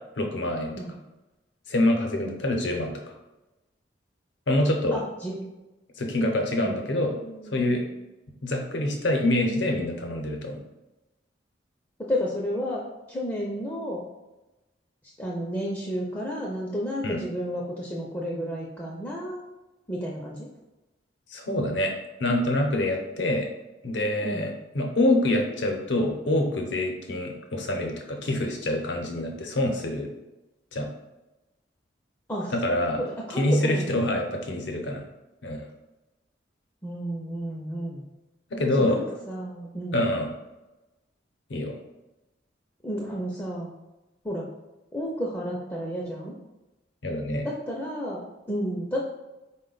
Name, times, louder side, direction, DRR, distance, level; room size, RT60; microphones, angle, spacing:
voice 1, 0.2-0.8 1.7-3.0 4.5-5.0 6.0-7.2 7.5-7.8 8.4-10.6 17.0-17.2 21.3-21.9 22.2-23.5 23.8-30.1 30.7-30.9 32.5-33.0 33.4-35.0 35.4-35.6 38.5-39.0 39.9-40.3 41.5-41.8 47.0-47.5, left 1 dB, 70° left, 2 dB, 0.6 m, -26 dB
voice 2, 4.9-5.5 6.6-7.9 12.0-12.8 13.1-14.0 15.2-19.5 19.9-20.5 24.2-24.4 32.3-32.5 33.0-34.0 36.8-38.0 38.8-40.1 42.8-43.7 44.2-44.5 44.9-46.4 47.4-49.0, equal, 15° left, -4 dB, 0.4 m, -32 dB
4.1 x 2.1 x 3.8 m, 1.0 s
head